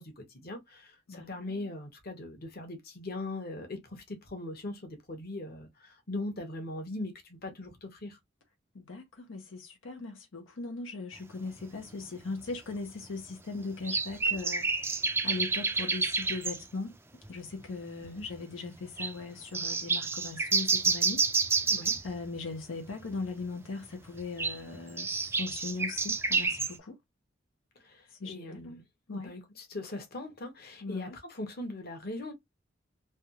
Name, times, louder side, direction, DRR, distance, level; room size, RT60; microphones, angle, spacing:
voice 1, 0.0-8.2 18.0-18.2 21.7-21.9 27.8-28.8 29.1-32.3, left 2 dB, 50° left, 1.1 m, -40 dB
voice 2, 1.1-1.7 8.7-17.0 17.3-21.7 22.0-27.0 28.1-28.8 29.1-29.3 30.8-31.2, left 3 dB, 90° left, 0.7 m, -39 dB
sound 1, 11.6-11.7 12.5-12.6 13.8-16.6 17.2-17.3 17.6-17.7 18.1-18.4 19.0-19.1 19.5-22.1 24.2-26.7, right 4 dB, 10° right, 0.4 m, -29 dB
3.3 x 2.3 x 2.8 m
head